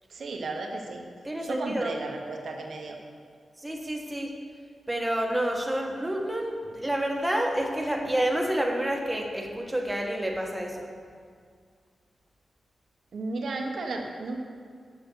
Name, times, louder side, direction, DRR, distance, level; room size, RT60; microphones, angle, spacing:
voice 1, 0.1-1.0 1.4-3.0 13.1-14.4, right 3 dB, 70° right, 3 dB, 1.0 m, -34 dB
voice 2, 1.2-1.9 3.6-4.3 4.9-10.9, right 1 dB, 15° right, 1 dB, 1.5 m, -29 dB
6.8 x 5.8 x 6.4 m, 2.1 s
supercardioid pair, 45°, 0 cm